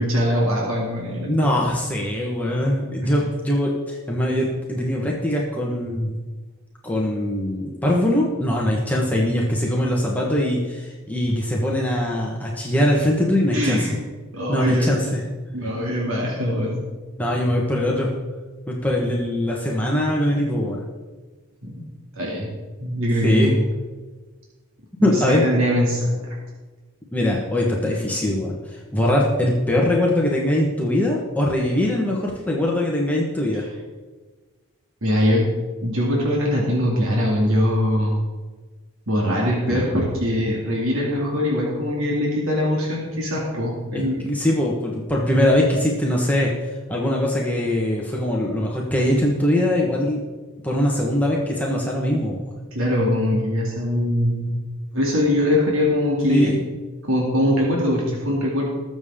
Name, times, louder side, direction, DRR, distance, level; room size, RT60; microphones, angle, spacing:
voice 1, 0.0-1.3 3.0-3.1 13.5-14.0 14.3-14.9 15.5-16.8 21.6-21.9 22.2-22.5 22.8-23.5 25.0-26.1 35.0-35.5 35.8-38.2 39.1-44.3 52.7-54.5 54.9-56.5 57.0-58.6, left 1 dB, 65° right, -3 dB, 2.5 m, -22 dB
voice 2, 1.2-6.1 6.8-13.9 14.5-15.2 17.2-18.1 18.7-20.8 23.2-23.5 25.0-25.5 27.1-28.5 28.9-33.6 43.9-50.2 50.6-52.4 56.3-56.5, left 1 dB, 5° left, -3 dB, 1.3 m, -22 dB
20.5 x 7.1 x 3.7 m, 1.3 s
head